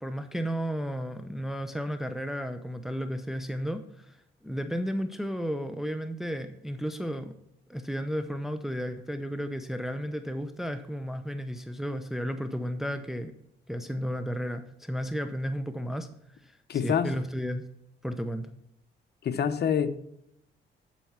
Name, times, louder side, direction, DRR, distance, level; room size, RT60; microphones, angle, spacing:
voice 1, 0.0-4.2 4.4-7.3 7.7-13.3 13.7-16.1 16.4-16.5 16.8-17.6 18.0-18.5, equal, ahead, 8 dB, 0.7 m, -33 dB
voice 2, 16.7-17.1 19.2-20.0, left 7 dB, 55° left, 11 dB, 0.9 m, -26 dB
12.0 x 4.6 x 5.8 m, 0.77 s
cardioid pair, 90°, 20 cm